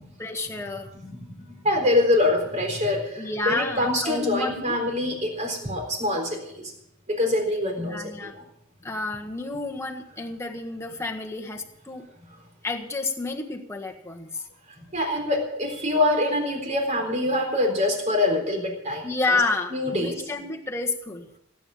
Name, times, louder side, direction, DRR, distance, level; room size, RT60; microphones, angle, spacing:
voice 1, 0.2-0.9 3.2-4.8 7.8-8.3 8.8-12.1 12.6-14.5 19.0-21.3, left 3 dB, 15° left, 1 dB, 1.5 m, -30 dB
voice 2, 1.6-6.7 7.1-8.4 14.9-19.4 19.7-20.2, left 1 dB, 35° right, 3 dB, 4.0 m, -25 dB
17.0 x 9.2 x 7.2 m, 0.80 s
head